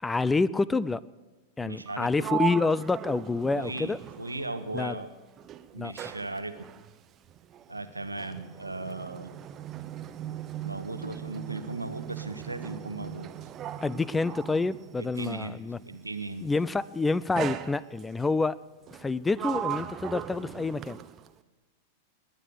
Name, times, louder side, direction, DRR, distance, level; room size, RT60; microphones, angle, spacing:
voice 1, 0.0-1.0 1.6-4.0 4.7-4.9 5.8-5.9 13.8-15.8 16.4-18.6 19.0-21.0, left 3 dB, 10° left, 20 dB, 0.4 m, -27 dB
voice 2, 1.6-2.2 3.6-5.1 5.7-6.5 7.7-9.3 10.6-13.3 15.0-15.6 15.8-16.5, right 2 dB, 85° right, 9 dB, 1.2 m, -37 dB
Sliding door, 1.8-5.1 5.4-15.5 16.4-16.7 17.3-18.3 18.9-21.4, right 10 dB, 30° right, 0.8 m, -38 dB
21.0 x 9.1 x 6.5 m, 1.2 s
figure-of-eight pair, 90°, 0 cm